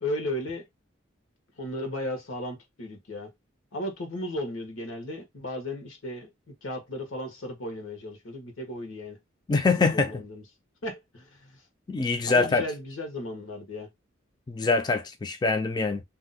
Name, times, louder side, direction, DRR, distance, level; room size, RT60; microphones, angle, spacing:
voice 1, 0.0-0.6 1.6-3.3 3.7-6.3 6.6-9.2 9.7-10.4 10.8-11.6 12.2-13.9, left 1 dB, 90° left, 1.2 m, -35 dB
voice 2, 9.5-10.2 11.9-12.7 14.5-16.0, left 3 dB, 20° left, 0.3 m, -24 dB
2.7 x 2.1 x 3.9 m
head